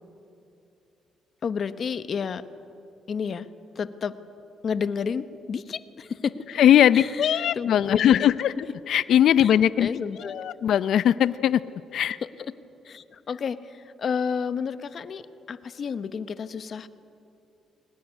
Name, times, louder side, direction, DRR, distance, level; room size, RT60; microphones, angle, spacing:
voice 1, 1.4-2.4 3.1-3.5 3.7-4.1 4.6-6.5 6.9-8.3 9.4-9.5 9.8-10.6 12.4-12.5 12.8-16.9, left 6 dB, 50° left, 12 dB, 1.0 m, -31 dB
voice 2, 6.6-8.5 8.9-9.9 10.3-11.6 11.9-12.2, left 10 dB, 70° left, 16 dB, 0.5 m, -20 dB
22.0 x 19.0 x 9.8 m, 2.8 s
cardioid pair, 90°, 0 cm